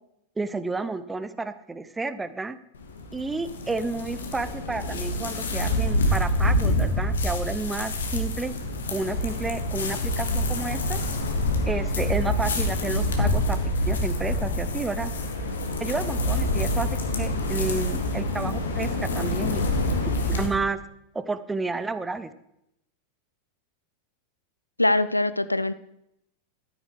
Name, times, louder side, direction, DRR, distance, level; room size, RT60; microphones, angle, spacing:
voice 1, 0.4-2.6 3.1-8.5 8.9-11.0 11.7-13.6 13.9-15.1 15.8-16.9 17.2-19.6 20.0-20.8 21.1-22.3, right 3 dB, 10° right, 14 dB, 0.7 m, -31 dB
sound 1, 2.8-20.5, left 1 dB, 65° left, 1.9 m, -26 dB
voice 2, 24.8-25.7, left 2 dB, 85° left, 15 dB, 0.5 m, -22 dB
13.5 x 9.1 x 4.9 m, 0.81 s
figure-of-eight pair, 90°, 0 cm